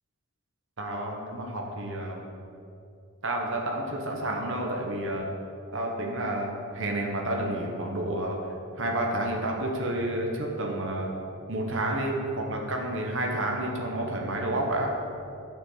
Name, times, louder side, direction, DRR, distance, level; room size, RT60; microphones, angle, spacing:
voice 1, 0.8-2.3 3.2-5.3 5.7-8.4 8.8-11.1 11.5-14.9, right 1 dB, 55° right, 0 dB, 1.2 m, -30 dB
7.1 x 6.1 x 7.6 m, 2.6 s
head